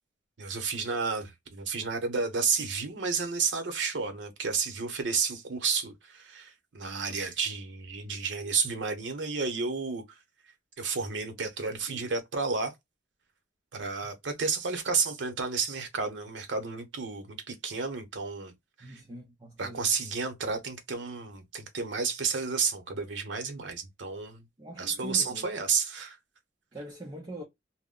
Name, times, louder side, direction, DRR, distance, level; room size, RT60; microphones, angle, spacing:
voice 1, 0.4-10.0 10.8-12.7 13.7-18.5 18.8-19.0 19.6-24.4 24.8-26.2, right 5 dB, 85° right, 0.8 m, -31 dB
voice 2, 18.8-19.9 24.6-25.5 26.7-27.4, equal, 25° right, 0.6 m, -42 dB
2.1 x 2.1 x 3.5 m
head